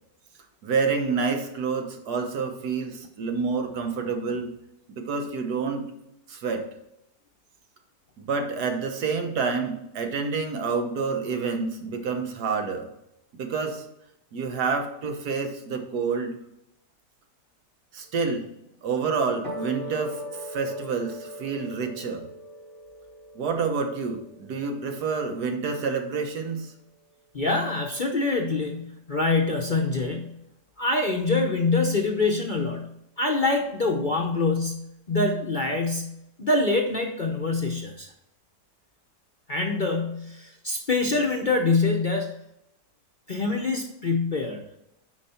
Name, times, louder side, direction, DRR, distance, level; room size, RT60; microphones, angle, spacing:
voice 1, 0.6-4.5 5.1-5.9 6.3-6.7 8.2-12.9 13.3-13.8 14.3-16.3 17.9-18.5 18.8-22.3 23.3-26.7, right 5 dB, 75° right, 4 dB, 1.6 m, -28 dB
sound 1, 19.4-26.0, equal, 45° right, 3.2 m, -40 dB
voice 2, 27.3-30.3 30.8-32.9 33.2-36.1 36.4-38.1 39.5-42.3 43.3-44.6, left 3 dB, 40° left, 1 dB, 0.7 m, -25 dB
9.3 x 4.9 x 4.3 m, 0.81 s
omnidirectional pair, 1.7 m